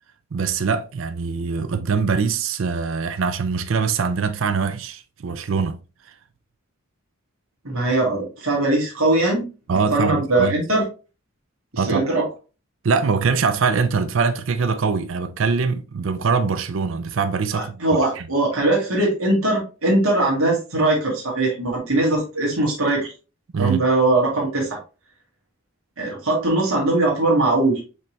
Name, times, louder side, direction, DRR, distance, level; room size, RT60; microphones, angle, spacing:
voice 1, 0.3-5.8 9.7-10.5 11.8-12.0 12.8-17.8 18.2-18.3 23.5-23.8, right 5 dB, 65° right, 0.5 m, -23 dB
voice 2, 7.6-9.5 9.9-10.9 11.7-12.3 17.5-23.1 23.6-24.8 26.0-27.8, right 2 dB, 80° right, 2.0 m, -20 dB
5.1 x 3.4 x 3.0 m
head